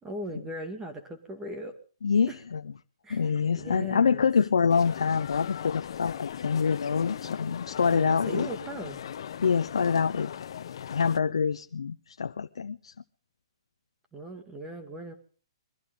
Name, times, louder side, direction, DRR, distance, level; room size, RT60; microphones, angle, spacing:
voice 1, 0.0-1.8 2.3-2.4 3.0-4.3 7.9-9.0 14.1-15.1, right 1 dB, 10° right, 2.2 m, -39 dB
voice 2, 2.0-2.6 3.1-8.5 9.4-10.3 10.9-12.9, left 6 dB, 85° left, 0.7 m, -26 dB
sound 1, 4.7-11.2, left 9 dB, 65° left, 1.0 m, -39 dB
22.5 x 16.0 x 3.9 m
hypercardioid pair, 150°, 3 cm